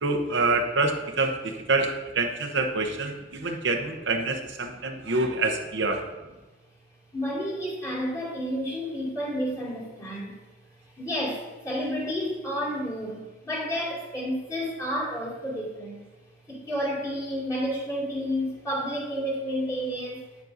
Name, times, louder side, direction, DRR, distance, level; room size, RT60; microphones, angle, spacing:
voice 1, 0.0-6.0, right 3 dB, 85° right, 3 dB, 0.9 m, -26 dB
voice 2, 7.1-10.3 11.0-16.0 16.5-20.2, equal, 20° left, -6 dB, 2.4 m, -30 dB
9.2 x 7.4 x 2.6 m, 1.2 s
head